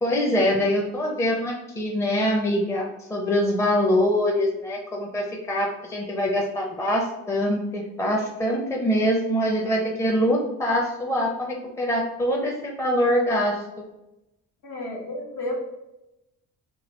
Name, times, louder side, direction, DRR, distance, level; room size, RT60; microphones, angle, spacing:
voice 1, 0.0-13.6, equal, 10° left, -1 dB, 0.5 m, -24 dB
voice 2, 14.6-15.5, left 1 dB, 80° left, -3 dB, 1.2 m, -32 dB
3.0 x 2.6 x 3.0 m, 0.91 s
cardioid pair, 90°, 30 cm